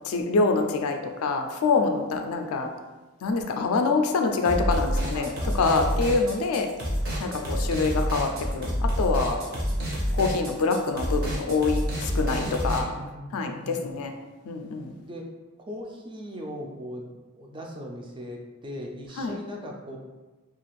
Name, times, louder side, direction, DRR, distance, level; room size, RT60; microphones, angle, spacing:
voice 1, 0.0-2.7 3.2-5.3 5.6-6.7 7.2-8.7 9.0-9.4 10.1-12.9 13.3-14.1 14.5-14.9 19.2-19.3, left 4 dB, 65° left, 5 dB, 0.3 m, -25 dB
sound 1, 4.4-12.8, equal, 45° right, 0.7 m, -28 dB
voice 2, 5.1-5.9 7.2-7.8 8.6-9.0 9.4-9.8 12.4-14.0 15.0-20.0, equal, 20° right, 0 dB, 0.3 m, -40 dB
2.4 x 2.4 x 3.1 m, 1.2 s
head